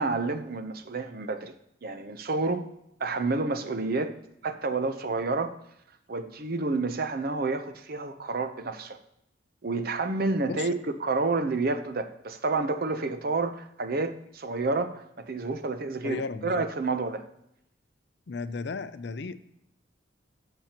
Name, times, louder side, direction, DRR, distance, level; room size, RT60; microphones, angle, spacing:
voice 1, 0.0-1.5 1.8-2.6 3.0-4.1 4.4-5.5 6.1-9.0 9.6-10.7 11.0-17.3, right 3 dB, 50° right, 9 dB, 0.7 m, -29 dB
voice 2, 16.0-16.6 18.3-19.4, left 4 dB, 60° left, 13 dB, 0.5 m, -35 dB
13.5 x 7.0 x 2.9 m, 0.78 s
head